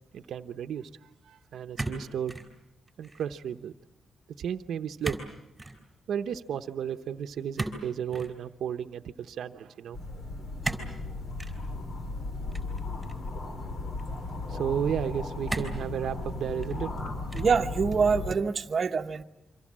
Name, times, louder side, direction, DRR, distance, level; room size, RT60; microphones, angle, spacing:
voice 1, 0.1-0.9 1.3-2.4 3.0-3.7 4.4-5.2 6.1-10.0 14.5-16.9, right 8 dB, 80° right, 7 dB, 0.9 m, -33 dB
sound 1, 1.8-2.5 2.9-3.3 5.0-5.3 5.6-5.8 7.6-8.3 10.6-10.9 11.4-11.6 12.5-13.3 14.0-14.1 15.5-15.9 16.5-16.9 17.3-17.7, right 2 dB, 5° right, 4.6 m, -35 dB
sound 2, 9.9-18.3, left 2 dB, 45° left, 3.0 m, -36 dB
voice 2, 17.3-19.2, right 5 dB, 40° right, 3 dB, 1.2 m, -25 dB
28.0 x 25.5 x 7.5 m, 0.93 s
wide cardioid pair, 140°, 0 cm